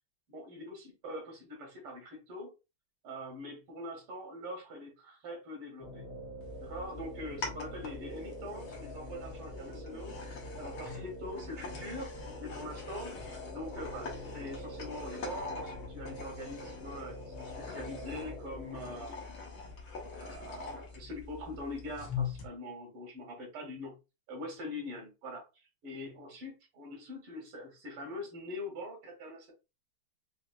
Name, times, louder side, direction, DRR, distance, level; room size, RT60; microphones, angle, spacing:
voice 1, 0.3-2.5 3.0-6.0 6.6-12.1 12.4-13.1 13.5-19.3 20.1-24.0 24.3-25.4 25.8-29.5, left 1 dB, 80° right, 2.4 m, -43 dB
sound 1, 5.8-19.0, equal, 40° left, 1.1 m, -46 dB
sound 2, 6.4-22.5, left 5 dB, 75° left, 2.0 m, -43 dB
6.3 x 2.7 x 2.3 m
omnidirectional pair, 2.4 m